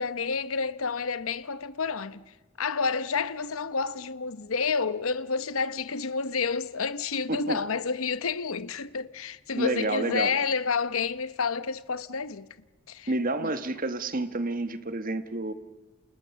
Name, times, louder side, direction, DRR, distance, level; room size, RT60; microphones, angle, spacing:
voice 1, 0.0-12.5 12.9-13.1 13.4-13.5, left 5 dB, 80° left, 0.9 m, -30 dB
voice 2, 9.6-10.3 13.1-15.5, right 2 dB, 40° right, 1.3 m, -29 dB
30.0 x 28.0 x 7.0 m
head